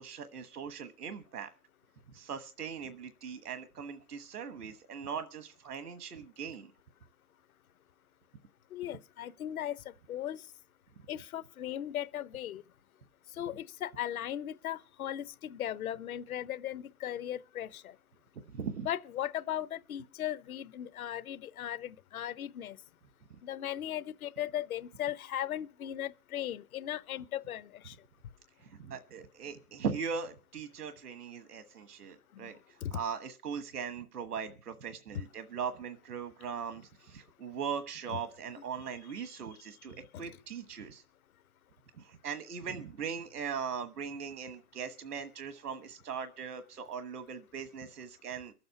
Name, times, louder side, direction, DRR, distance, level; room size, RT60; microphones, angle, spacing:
voice 1, 0.0-1.5 2.1-6.7 18.5-18.9 28.6-41.0 42.0-48.5, right 6 dB, 90° right, 1.3 m, -40 dB
voice 2, 8.7-10.4 11.1-12.6 13.4-17.9 18.8-22.8 23.4-28.0 32.3-32.5 32.8-33.0 38.1-38.2, left 11 dB, 65° left, 1.0 m, -37 dB
23.5 x 7.8 x 5.7 m
hypercardioid pair, 140°, 45 cm